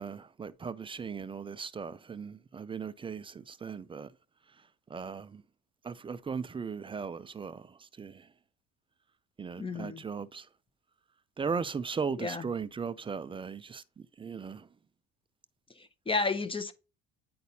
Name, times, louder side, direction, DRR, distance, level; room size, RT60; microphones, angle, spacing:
voice 1, 0.0-4.1 4.9-5.4 5.8-8.3 9.4-10.5 11.4-14.7, right 5 dB, 15° right, 0.3 m, -37 dB
voice 2, 9.6-10.0 12.2-12.4 15.8-16.7, left 3 dB, 15° left, 0.8 m, -32 dB
9.3 x 4.1 x 2.7 m
supercardioid pair, 95°, 34 cm